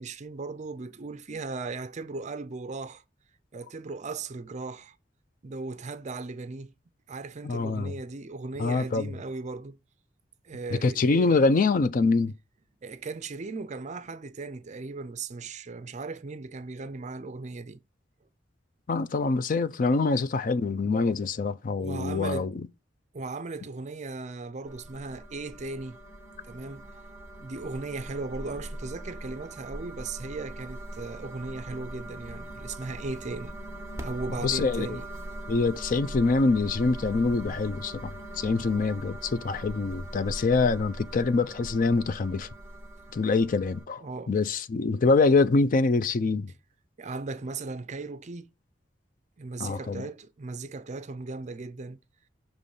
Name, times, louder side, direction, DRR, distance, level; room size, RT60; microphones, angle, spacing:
voice 1, 0.0-3.0 3.5-5.0 5.4-6.7 7.1-9.8 10.4-11.4 12.8-17.8 21.8-22.5 23.1-26.0 26.5-26.9 27.4-33.5 34.0-35.1 44.0-44.3 47.0-48.5 49.4-52.0, right 3 dB, 40° right, 0.5 m, -37 dB
voice 2, 7.4-7.9 8.6-9.1 10.7-12.3 18.9-22.6 34.4-35.0 35.5-42.5 43.1-46.5 49.6-50.1, left 3 dB, 45° left, 0.4 m, -25 dB
sound 1, 24.7-43.9, right 1 dB, 15° right, 1.1 m, -41 dB
6.6 x 3.1 x 5.4 m
head